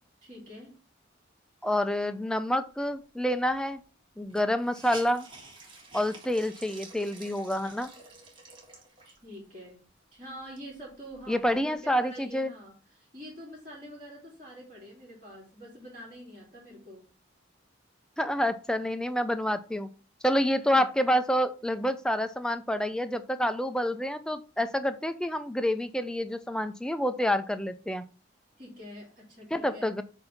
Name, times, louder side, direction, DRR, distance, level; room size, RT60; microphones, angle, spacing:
voice 1, 0.2-0.8 9.0-9.8 10.1-17.0 20.7-20.9 28.6-30.0, equal, 45° right, -4 dB, 2.8 m, -46 dB
voice 2, 1.6-3.8 4.2-5.3 5.9-7.9 11.3-12.5 18.2-19.9 20.2-28.0 29.5-30.0, equal, 5° left, 10 dB, 0.4 m, -28 dB
Hiss, 3.5-3.6 3.8-3.9 4.3-9.3 9.9-10.0 10.4-11.7, right 3 dB, 25° right, 1.7 m, -49 dB
7.8 x 2.7 x 5.7 m, 0.36 s
head